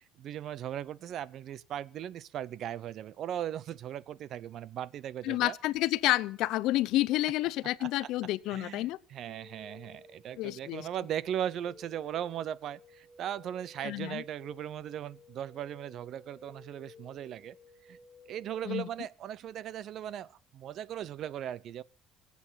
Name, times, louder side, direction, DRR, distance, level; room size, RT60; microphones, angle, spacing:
voice 1, 0.2-5.6 7.8-8.1 8.5-17.6 17.8-18.0 18.3-21.8, right 10 dB, 55° right, 0.6 m, -38 dB
voice 2, 5.2-9.0 10.4-10.9 13.8-14.2 18.6-18.9, left 16 dB, 70° left, 0.6 m, -29 dB
sound 1, 9.3-18.8, left 2 dB, 5° left, 3.4 m, -56 dB
23.5 x 8.4 x 5.7 m
cardioid pair, 125°, 0 cm